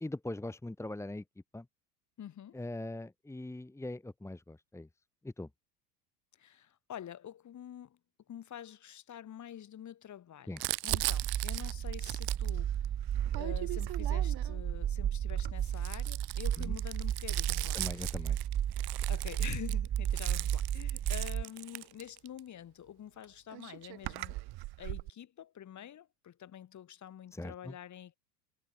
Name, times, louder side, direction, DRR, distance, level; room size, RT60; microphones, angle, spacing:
voice 1, 0.0-1.2 1.5-1.6 2.5-4.9 5.2-5.5 10.5-10.6 16.6-16.7 17.7-18.4 27.3-27.7, left 2 dB, 5° left, 1.7 m, -41 dB
voice 2, 2.2-2.6 6.4-8.0 8.3-12.9 13.4-18.3 19.1-24.4 24.8-28.2, left 10 dB, 35° left, 6.4 m, -47 dB
Crumpling crinkling, 10.6-14.6 15.3-22.4 23.2-23.3 23.5-25.1, right 19 dB, 50° right, 6.3 m, -39 dB
sound 1, 10.9-21.4, right 10 dB, 30° right, 1.8 m, -33 dB
hypercardioid pair, 85°, 48 cm